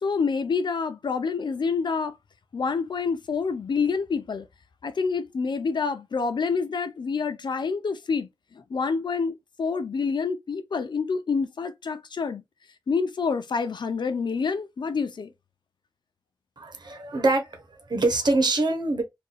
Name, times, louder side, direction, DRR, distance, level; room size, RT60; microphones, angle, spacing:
voice 1, 0.0-2.1 2.5-4.5 4.8-8.3 8.5-12.4 12.9-15.3, left 5 dB, 75° left, 0.5 m, -27 dB
voice 2, 16.6-19.0, right 2 dB, 65° right, 1.1 m, -24 dB
2.7 x 2.6 x 3.9 m
cardioid pair, 55°, 8 cm